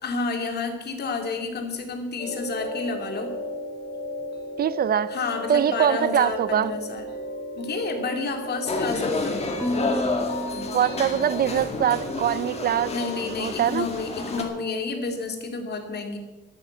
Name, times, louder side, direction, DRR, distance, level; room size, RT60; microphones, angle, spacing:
voice 1, 0.0-3.3 5.1-7.1 7.6-9.4 12.9-16.2, left 4 dB, 65° left, 2.5 m, -30 dB
sound 1, 2.2-13.5, equal, 85° left, 3.7 m, -35 dB
voice 2, 4.6-5.2 5.5-6.7 10.7-12.9 13.4-13.9, right 9 dB, 60° right, 0.5 m, -23 dB
sound 2, 8.7-14.4, left 3 dB, 35° left, 2.1 m, -30 dB
Marimba xylophone / Wood, 9.6-11.8, equal, 5° right, 1.5 m, -32 dB
11.5 x 11.5 x 8.1 m
wide cardioid pair, 155°, 18 cm